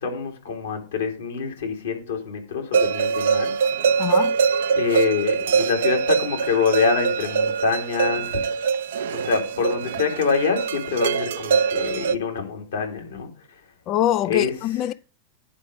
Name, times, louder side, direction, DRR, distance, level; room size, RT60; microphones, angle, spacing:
voice 1, 0.0-3.5 4.7-8.4 9.1-13.3 14.3-14.5, left 5 dB, 65° left, 2.9 m, -25 dB
sound 1, 2.7-12.2, right 6 dB, 60° right, 0.6 m, -23 dB
voice 2, 4.0-4.4 13.9-14.9, left 12 dB, 35° left, 0.4 m, -23 dB
10.0 x 4.9 x 6.6 m
figure-of-eight pair, 90°, 0 cm